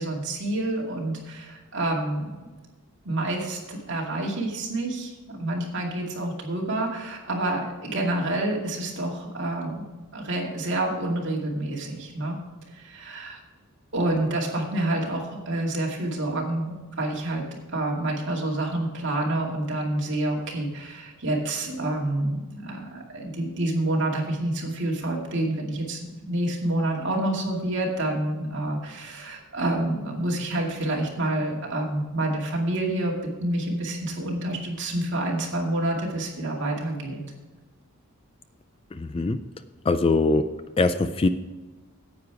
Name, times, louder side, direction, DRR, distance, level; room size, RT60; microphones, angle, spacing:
voice 1, 0.0-2.3 3.0-9.8 10.1-12.4 12.7-13.4 13.9-17.4 17.7-37.2, right 1 dB, 55° right, -2 dB, 2.4 m, -28 dB
voice 2, 38.9-39.4 39.9-40.5 40.8-41.3, left 3 dB, 25° left, 11 dB, 0.3 m, -22 dB
9.7 x 8.5 x 4.7 m, 1.2 s
head